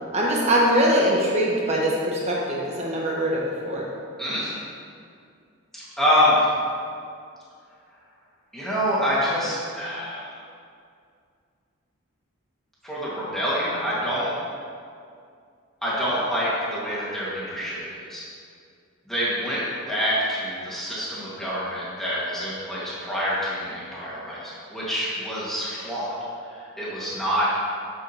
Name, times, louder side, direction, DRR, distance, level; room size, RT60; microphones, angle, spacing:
voice 1, 0.1-3.8, equal, 30° right, -3 dB, 1.1 m, -22 dB
voice 2, 4.2-4.5 5.7-6.5 8.5-10.4 12.8-14.3 15.8-18.2 19.1-26.1 26.5-27.5, equal, ahead, -9 dB, 1.7 m, -26 dB
7.4 x 7.3 x 2.9 m, 2.3 s
head